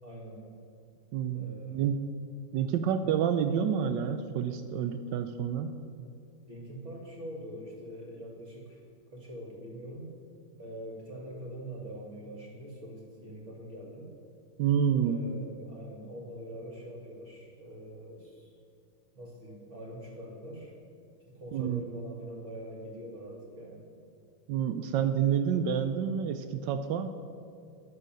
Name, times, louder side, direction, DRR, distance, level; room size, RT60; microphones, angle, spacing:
voice 1, 0.0-0.5 1.3-1.9 6.5-8.8 9.1-10.1 10.6-14.1 15.0-18.5 19.1-20.7 21.3-23.8, equal, 35° right, -2 dB, 2.4 m, -44 dB
voice 2, 1.1-2.0 2.5-5.7 14.6-15.2 21.5-21.8 24.5-27.1, right 8 dB, 75° right, 9 dB, 1.0 m, -28 dB
11.0 x 6.4 x 7.5 m, 2.4 s
omnidirectional pair, 2.4 m